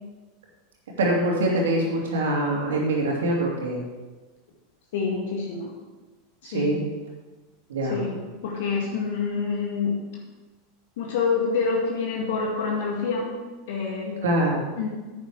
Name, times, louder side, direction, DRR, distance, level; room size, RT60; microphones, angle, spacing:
voice 1, 1.0-3.8 6.4-6.8 7.7-8.0 14.2-14.6, right 1 dB, 70° right, -1 dB, 2.8 m, -24 dB
voice 2, 4.9-5.7 6.4-6.7 7.9-8.1 8.4-10.0 11.0-13.3 13.7-14.2 14.8-14.9, left 5 dB, 65° left, -1 dB, 2.0 m, -27 dB
10.5 x 8.6 x 4.9 m, 1.3 s
figure-of-eight pair, 85°, 0 cm